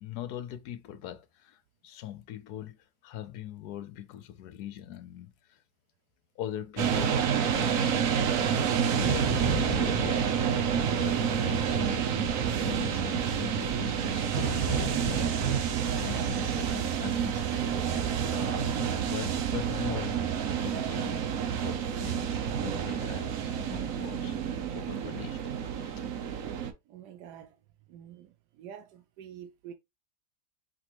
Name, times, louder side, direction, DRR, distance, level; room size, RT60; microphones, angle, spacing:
voice 1, 0.0-5.6 6.4-7.2 7.5-8.2 8.8-10.7 11.0-12.2 12.6-21.2 21.6-26.1, left 11 dB, 75° left, 1.2 m, -42 dB
sound 1, 6.8-26.7, right 8 dB, 60° right, 1.0 m, -29 dB
Thunder / Rain, 8.6-24.3, right 4 dB, 25° right, 2.9 m, -38 dB
voice 2, 26.9-27.6 27.9-29.7, right 9 dB, 85° right, 1.2 m, -47 dB
5.0 x 3.1 x 3.0 m
omnidirectional pair, 1.8 m